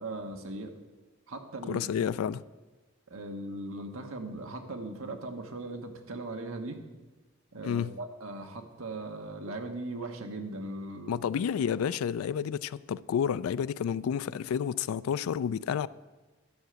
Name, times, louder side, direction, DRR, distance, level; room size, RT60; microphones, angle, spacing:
voice 1, 0.0-0.7 1.3-1.9 3.1-6.8 7.5-11.3, right 2 dB, 75° right, 1.1 m, -39 dB
voice 2, 1.7-2.4 7.6-7.9 11.1-15.9, left 8 dB, 85° left, 0.3 m, -30 dB
11.0 x 5.0 x 8.0 m
head